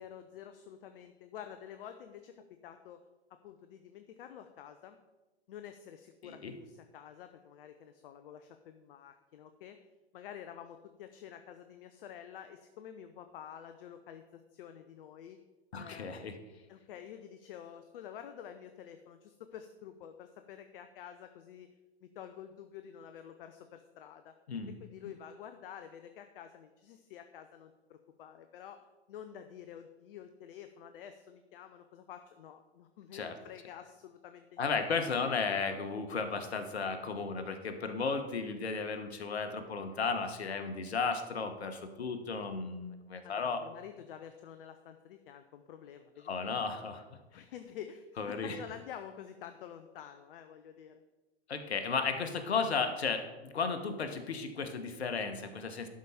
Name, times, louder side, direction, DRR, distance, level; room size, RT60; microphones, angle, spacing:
voice 1, 0.0-3.0 3.3-5.0 5.5-9.8 10.1-15.4 15.8-16.4 16.7-21.7 22.0-24.3 24.8-34.8 43.2-46.5 47.3-51.0, left 9 dB, 60° left, 8 dB, 0.7 m, -49 dB
voice 2, 6.2-6.5 15.7-16.4 24.5-24.7 33.1-33.4 34.6-43.6 46.3-47.0 48.2-48.6 51.5-55.9, left 5 dB, 80° left, 8 dB, 1.3 m, -34 dB
11.5 x 4.9 x 5.6 m, 1.1 s
hypercardioid pair, 105°, 32 cm